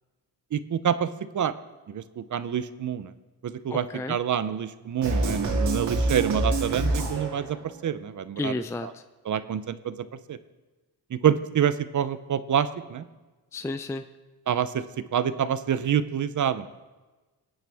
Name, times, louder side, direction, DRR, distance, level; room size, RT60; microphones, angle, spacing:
voice 1, 0.5-1.5 1.9-3.1 3.4-7.6 7.8-8.5 9.3-10.0 10.3-10.4 11.1-13.0 14.5-14.8 15.1-16.7, right 8 dB, 50° right, 13 dB, 0.7 m, -27 dB
voice 2, 3.7-4.2 8.4-9.0 13.5-14.0, left 2 dB, 5° left, 9 dB, 0.4 m, -32 dB
sound 1, 5.0-7.7, right 2 dB, 85° right, 2.6 m, -26 dB
22.5 x 9.0 x 3.5 m, 1.2 s
cardioid pair, 100°, 40 cm